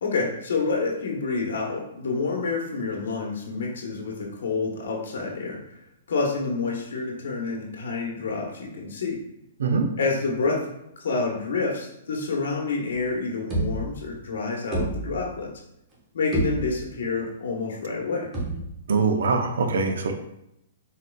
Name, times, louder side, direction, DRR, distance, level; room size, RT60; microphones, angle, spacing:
voice 1, 0.0-5.6 6.1-9.2 10.0-10.7 11.0-15.5 16.1-18.3, left 4 dB, 80° left, -1 dB, 0.9 m, -28 dB
sound 1, 13.0-13.1 13.5-14.3 14.7-15.5 15.9-16.0 16.3-17.1 18.3-19.0, right 2 dB, 20° right, 1.0 m, -30 dB
voice 2, 18.9-20.1, right 4 dB, 80° right, 5 dB, 0.6 m, -23 dB
4.1 x 3.8 x 2.2 m, 0.82 s
hypercardioid pair, 145°, 0 cm